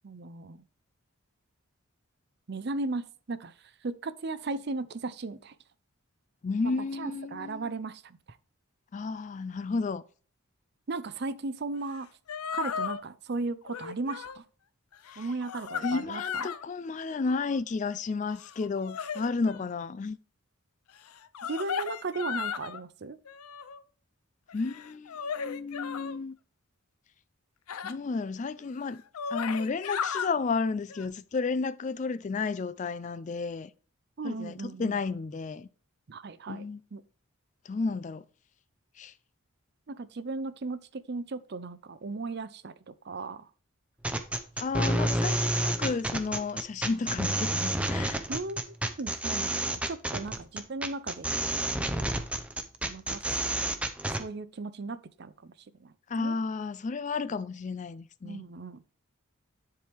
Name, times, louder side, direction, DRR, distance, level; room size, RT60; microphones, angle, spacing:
voice 1, 0.0-0.6 2.5-5.6 6.6-8.2 10.9-12.1 12.5-14.4 15.2-16.5 21.4-23.2 34.2-35.0 36.1-36.6 36.9-37.0 39.9-43.5 48.3-51.3 52.9-53.2 54.2-55.5 55.8-56.4 58.2-58.8, right 3 dB, 50° right, 0.5 m, -36 dB
voice 2, 6.4-7.6 8.9-10.0 15.1-15.2 15.8-20.2 24.5-26.4 27.8-29.0 29.3-33.7 34.2-35.7 36.5-36.8 37.7-38.2 39.0-39.1 44.6-48.2 56.1-58.4, left 4 dB, 35° left, 0.3 m, -32 dB
sound 1, 11.9-12.0 12.3-13.0 13.7-14.4 14.9-16.6 17.1-17.6 18.3-19.6 21.1-22.8 23.3-23.8 24.5-26.2 27.7-27.9 28.6-28.7 29.0-30.3 30.9-31.1, left 7 dB, 90° left, 0.6 m, -36 dB
sound 2, 44.0-54.2, right 1 dB, 5° right, 0.6 m, -29 dB
10.5 x 4.6 x 3.4 m
head